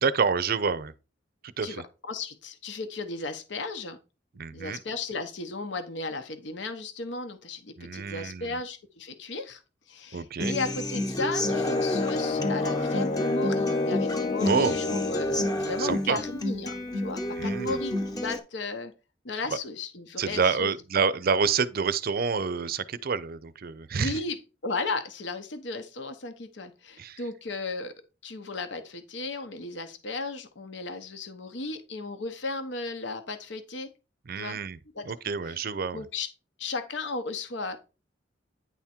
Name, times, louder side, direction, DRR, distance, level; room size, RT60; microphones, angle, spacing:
voice 1, 0.0-0.9 1.4-1.8 4.4-4.8 7.8-8.5 10.1-10.5 14.4-14.8 15.8-16.2 17.4-17.8 20.2-24.1 27.0-27.2 34.3-34.8 35.1-36.0, right 5 dB, 55° right, 0.5 m, -28 dB
voice 2, 1.6-4.0 4.5-9.6 9.9-18.9 19.2-21.1 23.9-24.4 24.6-27.9 28.2-33.9 34.4-34.6 34.9-35.0 35.4-35.6 35.9-36.3 36.6-37.8, left 3 dB, 70° left, 0.9 m, -35 dB
Human voice / Acoustic guitar, 10.4-18.4, left 1 dB, 20° left, 1.0 m, -30 dB
sound 1, 11.4-15.7, left 4 dB, 40° left, 0.4 m, -30 dB
9.6 x 3.6 x 4.3 m
head